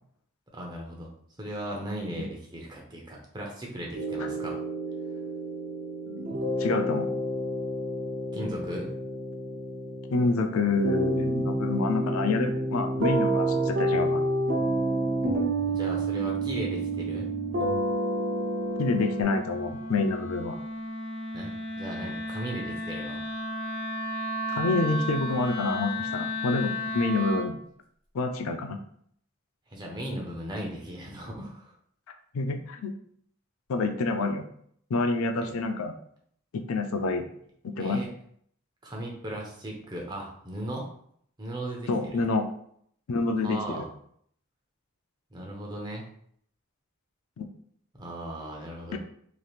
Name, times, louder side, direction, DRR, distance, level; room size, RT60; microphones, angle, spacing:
voice 1, 0.5-1.1 1.4-4.6 8.3-8.9 15.7-17.3 21.3-23.2 29.7-31.8 35.4-35.5 37.8-38.1 38.8-40.9 41.4-42.2 43.4-43.9 45.3-46.1 47.9-49.0, right 1 dB, 20° right, -1 dB, 0.6 m, -37 dB
sound 1, 4.0-19.2, right 1 dB, 60° right, 0.6 m, -29 dB
voice 2, 6.6-7.1 10.1-14.2 18.8-20.6 24.5-27.6 28.1-28.8 32.3-32.9 33.7-34.4 34.9-35.9 36.5-37.3 37.6-38.0 41.9-42.5 43.1-43.8 47.4-47.5 48.9-49.0, left 3 dB, 85° left, 6 dB, 0.4 m, -27 dB
Wind instrument woodwind instrument, 16.1-27.6, left 1 dB, 30° left, 1.2 m, -35 dB
3.3 x 2.9 x 2.4 m, 0.65 s
head